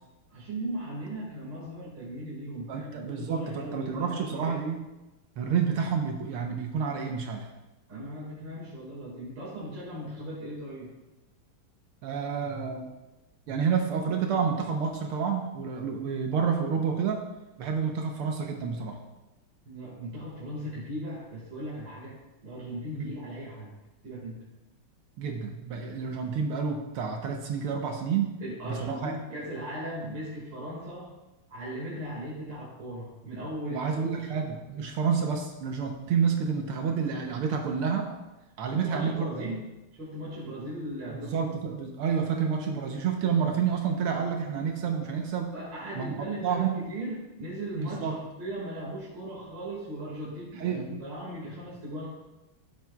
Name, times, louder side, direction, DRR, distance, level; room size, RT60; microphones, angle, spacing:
voice 1, 0.3-4.6 7.9-10.9 19.6-23.7 24.0-24.5 26.0-26.1 28.4-31.1 31.5-34.2 38.7-39.7 39.9-41.3 45.5-52.1, right 1 dB, 55° right, -6 dB, 2.7 m, -38 dB
voice 2, 2.7-4.8 5.4-7.5 12.0-12.9 13.5-17.2 17.6-19.0 22.9-23.1 25.2-28.4 28.7-29.1 33.7-38.2 38.6-39.5 41.1-45.5 46.0-46.8 47.8-48.2 50.6-50.9, right 6 dB, 80° right, 2 dB, 1.8 m, -29 dB
14.0 x 7.4 x 2.3 m, 1.0 s
omnidirectional pair, 2.4 m